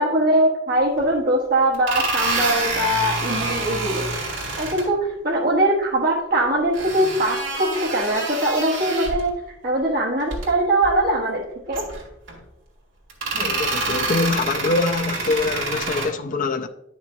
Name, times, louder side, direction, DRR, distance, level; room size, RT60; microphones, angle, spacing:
voice 1, 0.0-4.1 4.6-9.3 9.6-11.9, right 1 dB, 50° right, 1.2 m, -21 dB
sound 1, 1.0-1.1 1.7-4.9 6.7-9.3 10.2-10.5 10.8-11.0 11.7-12.4 13.1-16.1, right 3 dB, 65° right, 2.0 m, -27 dB
voice 2, 13.3-16.7, left 3 dB, 40° left, 0.4 m, -24 dB
9.6 x 6.0 x 2.6 m
head